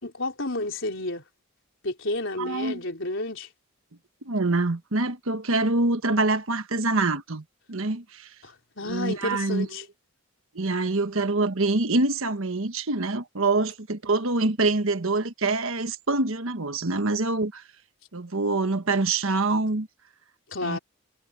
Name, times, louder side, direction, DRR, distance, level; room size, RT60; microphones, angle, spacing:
voice 1, 0.0-1.2 1.8-3.5 8.4-9.8 20.5-20.8, left 2 dB, 60° left, 4.4 m, -31 dB
voice 2, 2.4-2.8 4.2-8.3 8.8-9.8 10.5-17.6 18.1-19.9 20.6-20.8, right 3 dB, 70° right, 1.3 m, -25 dB
head